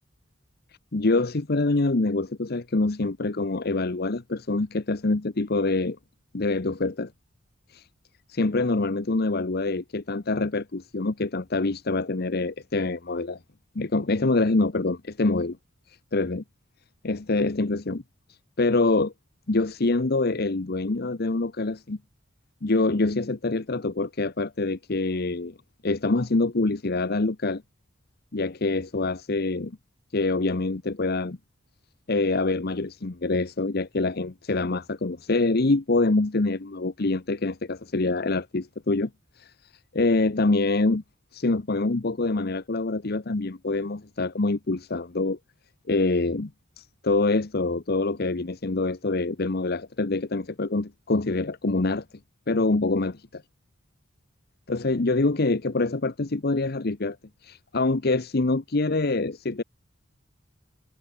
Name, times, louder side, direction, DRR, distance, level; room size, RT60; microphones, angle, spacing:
voice 1, 0.9-6.0 6.3-7.1 7.7-7.8 8.3-13.4 13.7-15.6 16.1-16.4 17.0-18.0 18.6-19.1 19.5-22.0 22.6-25.5 25.8-27.6 28.3-29.8 30.1-31.4 32.1-39.1 39.4-39.5 39.9-41.0 41.3-45.4 45.9-46.5 46.8-52.0 52.5-53.4 54.7-57.2 57.4-59.6, left 2 dB, 55° left, 0.9 m, -25 dB
head